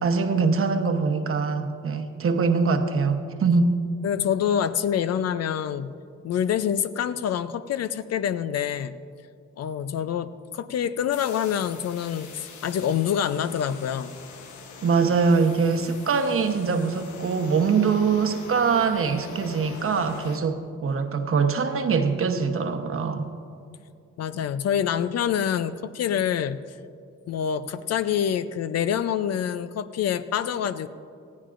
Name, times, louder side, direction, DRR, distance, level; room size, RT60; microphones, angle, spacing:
voice 1, 0.0-3.8 14.8-23.3, right 5 dB, 45° right, 7 dB, 1.0 m, -23 dB
voice 2, 4.0-5.9 6.2-9.0 9.6-14.1 24.2-26.6 27.3-30.9, left 9 dB, 55° left, 13 dB, 0.5 m, -26 dB
sound 1, 11.1-20.4, left 5 dB, 75° left, 1.1 m, -44 dB
19.5 x 14.5 x 2.5 m, 2.4 s
cardioid pair, 90°, 30 cm